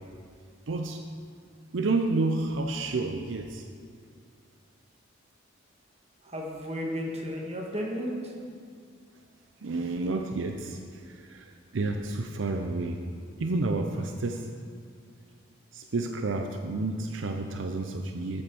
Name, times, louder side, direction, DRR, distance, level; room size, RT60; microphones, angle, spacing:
voice 1, 0.7-1.0 1.7-3.6 9.6-10.8 11.1-11.5 11.7-13.0 13.4-14.5 15.7-18.4, right 3 dB, 75° right, 4 dB, 0.6 m, -30 dB
voice 2, 6.2-8.3, equal, 35° right, -1 dB, 1.5 m, -33 dB
8.2 x 7.6 x 6.2 m, 2.1 s
head